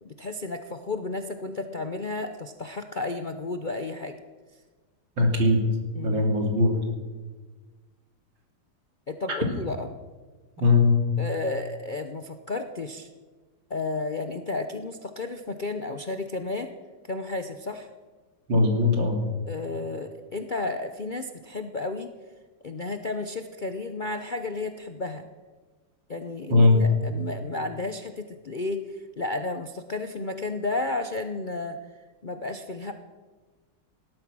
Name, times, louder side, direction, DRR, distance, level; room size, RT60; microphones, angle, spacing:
voice 1, 0.0-4.1 5.9-6.2 9.1-9.9 10.6-10.7 11.2-13.1 13.7-16.7 17.1-17.9 19.5-22.1 22.6-25.2 26.1-31.8 32.2-32.9, left 3 dB, 50° left, 6 dB, 0.5 m, -32 dB
voice 2, 5.2-5.6 6.0-6.7 10.6-11.0 18.5-19.2 26.5-26.8, left 2 dB, 90° right, 1 dB, 3.6 m, -20 dB
18.0 x 12.5 x 6.2 m, 1.4 s
omnidirectional pair, 2.0 m